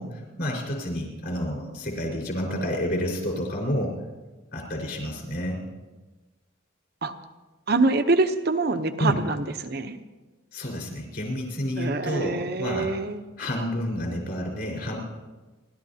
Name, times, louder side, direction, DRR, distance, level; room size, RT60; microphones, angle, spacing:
voice 1, 0.0-4.0 4.5-5.6 9.0-9.2 10.5-12.9 13.4-15.0, equal, 50° left, -2 dB, 4.8 m, -29 dB
voice 2, 7.7-10.0 11.8-13.3, right 3 dB, 50° right, 8 dB, 0.9 m, -25 dB
29.5 x 12.5 x 2.9 m, 1.2 s
head